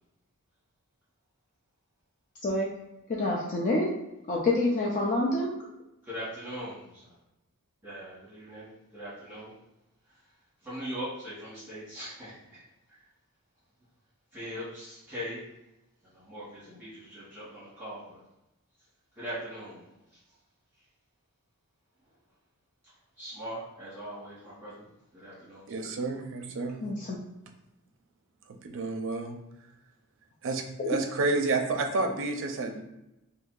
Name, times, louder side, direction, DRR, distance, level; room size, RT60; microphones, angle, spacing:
voice 1, 3.1-3.9 4.3-5.5 26.8-27.2 30.8-30.9, left 2 dB, 35° left, -2 dB, 0.4 m, -27 dB
voice 2, 6.0-7.0 7.8-9.5 10.6-12.6 14.3-15.5 16.0-18.2 19.2-19.9 23.2-24.8 25.1-25.8, equal, 10° right, -11 dB, 1.3 m, -40 dB
voice 3, 25.7-26.8 28.6-29.4 30.4-32.8, right 3 dB, 60° right, 5 dB, 0.5 m, -30 dB
2.7 x 2.6 x 3.8 m, 0.91 s
head